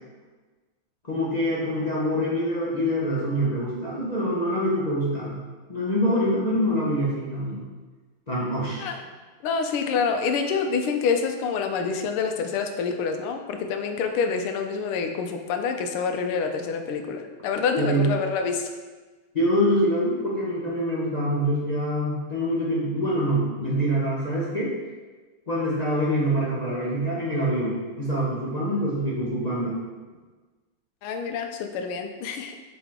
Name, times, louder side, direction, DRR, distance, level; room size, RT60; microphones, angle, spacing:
voice 1, 1.0-5.4 5.7-7.6 8.3-8.9 17.8-18.1 19.3-24.7 25.5-29.8, equal, 35° left, -7 dB, 0.7 m, -25 dB
voice 2, 9.4-18.7 31.0-32.5, left 5 dB, 90° left, 5 dB, 1.5 m, -27 dB
7.4 x 3.9 x 3.6 m, 1.3 s
omnidirectional pair, 2.3 m